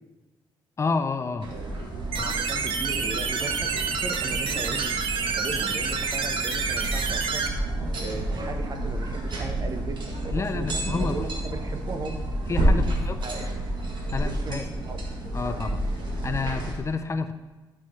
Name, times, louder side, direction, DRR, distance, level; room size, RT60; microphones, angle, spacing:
voice 1, 0.8-1.5 2.2-2.4 10.3-11.2 12.5-13.2 14.1-14.7 15.3-15.8 16.2-17.3, left 4 dB, 35° left, 9 dB, 0.4 m, -29 dB
sound 1, 1.4-16.7, right 1 dB, 65° right, 1.6 m, -30 dB
voice 2, 2.1-5.0 5.3-7.5 8.0-12.2 12.6-13.5 14.2-15.0, right 3 dB, 45° right, 6 dB, 0.9 m, -37 dB
sound 2, 2.1-7.5, right 5 dB, 85° right, 0.8 m, -28 dB
11.5 x 4.8 x 4.3 m, 1.2 s
cardioid pair, 110°, 9 cm